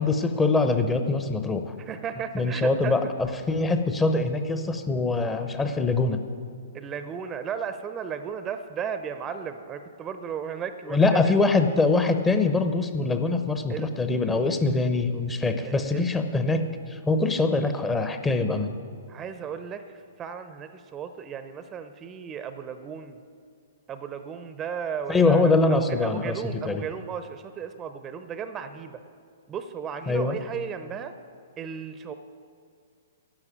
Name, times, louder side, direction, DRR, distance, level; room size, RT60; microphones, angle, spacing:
voice 1, 0.0-1.7 2.3-6.2 10.9-18.7 25.1-26.8 30.1-30.4, left 3 dB, 15° left, 8 dB, 0.9 m, -23 dB
voice 2, 1.8-3.0 6.7-11.4 13.7-13.9 15.6-16.1 19.1-23.2 23.9-29.0 29.5-31.1 31.6-32.1, right 7 dB, 20° right, 10 dB, 0.7 m, -35 dB
11.5 x 7.7 x 9.1 m, 2.2 s
figure-of-eight pair, 110°, 0 cm